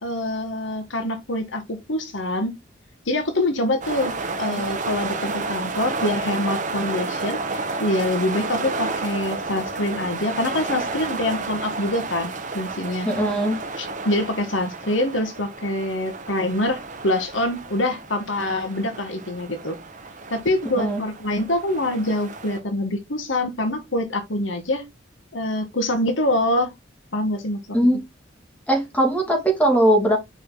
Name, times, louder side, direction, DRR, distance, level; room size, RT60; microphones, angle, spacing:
voice 1, 0.0-2.5 3.1-4.1 4.4-13.1 13.8-19.8 20.3-24.8 25.3-26.7 27.1-27.6, left 1 dB, 75° left, 1.7 m, -25 dB
sound 1, 3.8-22.6, right 3 dB, 40° right, 1.6 m, -31 dB
voice 2, 13.0-13.6 20.7-21.0 27.7-28.0 28.7-30.2, right 1 dB, 10° left, 3.1 m, -19 dB
6.5 x 5.3 x 3.9 m
head